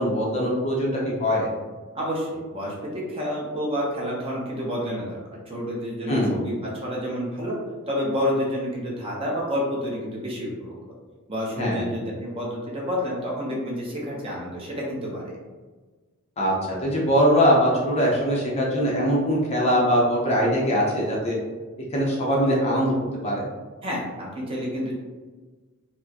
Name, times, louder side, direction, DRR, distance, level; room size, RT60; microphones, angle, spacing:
voice 1, 0.0-1.5 6.1-6.4 11.6-11.8 16.4-16.5 16.8-21.3 21.9-22.9 23.2-23.5, equal, 30° left, -4 dB, 0.6 m, -22 dB
voice 2, 1.9-5.2 5.5-7.5 7.9-10.7 11.3-15.3 23.8-24.9, equal, 25° right, -4 dB, 0.8 m, -29 dB
4.4 x 2.1 x 2.8 m, 1.3 s
head